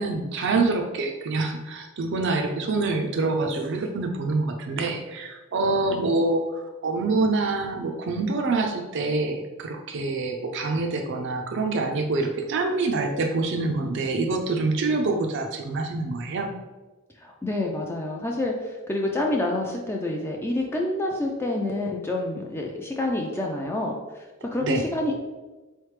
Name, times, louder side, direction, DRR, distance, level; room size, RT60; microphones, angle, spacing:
voice 1, 0.0-16.5 24.6-24.8, right 3 dB, 60° right, 4 dB, 0.4 m, -26 dB
voice 2, 17.2-24.0 24.5-25.2, left 2 dB, 10° left, 0 dB, 0.3 m, -27 dB
4.0 x 3.2 x 3.2 m, 1.2 s
head